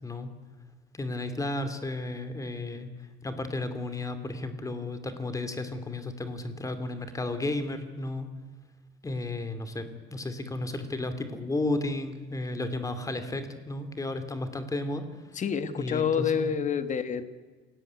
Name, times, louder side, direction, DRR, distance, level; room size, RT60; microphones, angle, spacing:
voice 1, 0.9-2.9 3.2-8.3 9.0-15.0 15.8-16.5, left 2 dB, 15° left, 9 dB, 2.6 m, -33 dB
voice 2, 15.3-17.2, left 7 dB, 35° left, 11 dB, 1.5 m, -28 dB
28.0 x 18.0 x 9.5 m, 1.3 s
cardioid pair, 155°, 21 cm